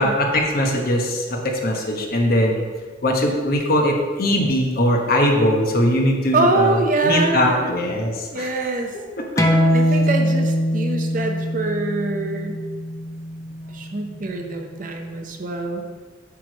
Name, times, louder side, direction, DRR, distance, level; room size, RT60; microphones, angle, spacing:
voice 1, 0.0-2.6 3.0-8.6 9.2-9.3, equal, 50° left, 1 dB, 1.0 m, -20 dB
voice 2, 6.3-7.7 8.3-8.9 9.7-12.6 13.7-15.8, right 2 dB, 45° right, 4 dB, 0.7 m, -24 dB
sound 1, 9.4-14.5, equal, 20° left, 0.6 m, -22 dB
8.3 x 3.3 x 6.1 m, 1.5 s
head